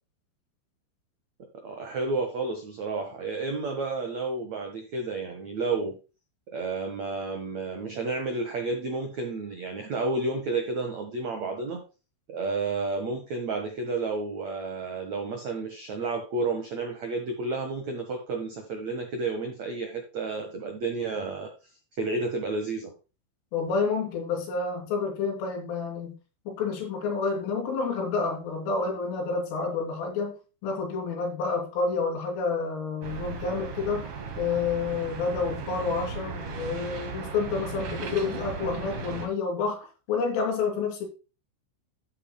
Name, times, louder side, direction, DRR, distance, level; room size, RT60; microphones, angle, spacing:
voice 1, 1.6-6.0 6.5-11.8 12.3-21.5 22.0-22.9, right 3 dB, 80° right, 1.6 m, -31 dB
voice 2, 23.5-26.2 26.5-30.3 30.6-34.1 34.4-41.1, left 4 dB, 85° left, 5.8 m, -29 dB
sound 1, 33.0-39.3, right 4 dB, 60° right, 1.4 m, -36 dB
12.5 x 8.9 x 2.2 m
omnidirectional pair, 5.6 m